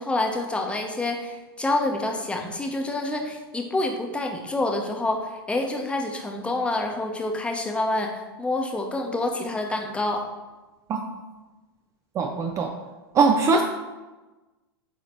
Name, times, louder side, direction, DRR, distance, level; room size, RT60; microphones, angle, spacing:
voice 1, 0.0-10.2, left 2 dB, 10° left, 2 dB, 0.9 m, -27 dB
voice 2, 12.2-12.7 13.2-13.6, right 4 dB, 25° right, 4 dB, 0.5 m, -20 dB
8.2 x 3.1 x 4.5 m, 1.2 s
figure-of-eight pair, 100°, 13 cm